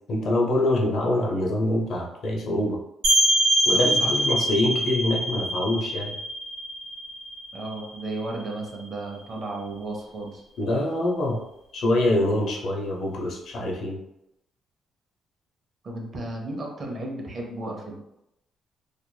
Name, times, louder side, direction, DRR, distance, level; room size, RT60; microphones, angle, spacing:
voice 1, 0.1-2.8 3.7-6.1 10.6-11.4 11.7-14.0, left 1 dB, 65° left, -1 dB, 0.7 m, -25 dB
sound 1, 3.0-8.5, right 1 dB, 65° right, 1.1 m, -24 dB
voice 2, 3.7-4.2 7.5-10.4 15.8-18.0, right 2 dB, 45° right, 0 dB, 0.7 m, -34 dB
2.9 x 2.5 x 2.2 m, 0.84 s
cardioid pair, 90°, 0 cm